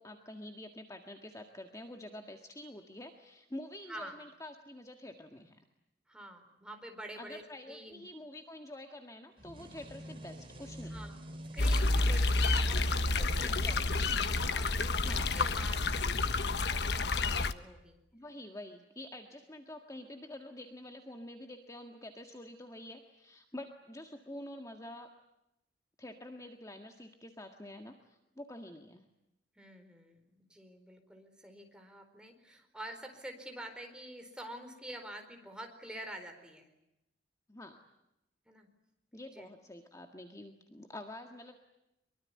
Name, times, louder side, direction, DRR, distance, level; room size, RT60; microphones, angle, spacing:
voice 1, 0.0-5.6 7.2-11.0 13.4-14.2 15.0-15.3 18.1-25.1 26.0-29.0 37.5-37.8 39.1-41.6, left 1 dB, 20° left, 4 dB, 1.7 m, -47 dB
voice 2, 6.1-8.0 10.8-11.2 11.5-18.0 29.6-36.7 38.5-38.7 39.3-39.5, right 1 dB, 5° right, 4 dB, 4.4 m, -48 dB
sound 1, 9.4-14.3, equal, 30° right, 4.7 m, -49 dB
sound 2, 11.6-17.5, left 3 dB, 70° left, 1.2 m, -29 dB
24.0 x 24.0 x 9.8 m, 0.88 s
head